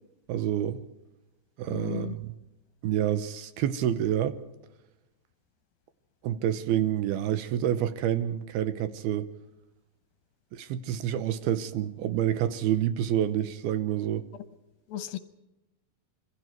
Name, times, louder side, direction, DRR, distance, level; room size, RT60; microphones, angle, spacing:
voice 1, 0.3-0.8 1.6-2.3 2.8-4.4 6.2-9.3 10.5-14.2, right 11 dB, 75° right, 2.7 m, -28 dB
voice 2, 1.7-2.2 14.9-15.2, left 12 dB, 75° left, 2.4 m, -35 dB
26.5 x 24.5 x 4.5 m
omnidirectional pair, 4.7 m